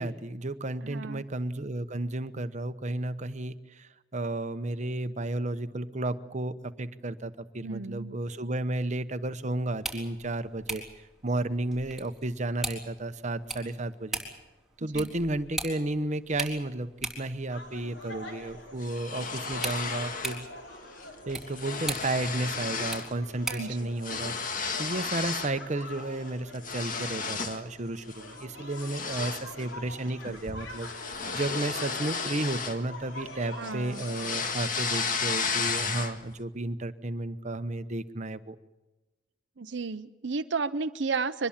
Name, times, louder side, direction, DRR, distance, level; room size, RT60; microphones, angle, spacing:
voice 1, 0.0-14.2 14.8-20.5 21.3-24.3 24.8-38.6, right 2 dB, 40° right, 11 dB, 1.0 m, -33 dB
voice 2, 0.8-1.2 7.6-8.1 14.8-15.1 23.5-23.9 33.5-34.3 39.6-41.5, right 4 dB, 65° right, 7 dB, 0.7 m, -33 dB
sound 1, 9.7-23.8, right 2 dB, ahead, 3.9 m, -41 dB
sound 2, 17.5-34.5, left 1 dB, 70° left, 4.5 m, -46 dB
sound 3, 18.8-20.5 20.8-21.0 21.3-23.1 23.4-25.6 26.0-27.7 28.1-28.3 28.7-33.3 33.6-36.3, left 5 dB, 45° left, 1.7 m, -33 dB
23.5 x 20.5 x 7.4 m, 1.1 s
head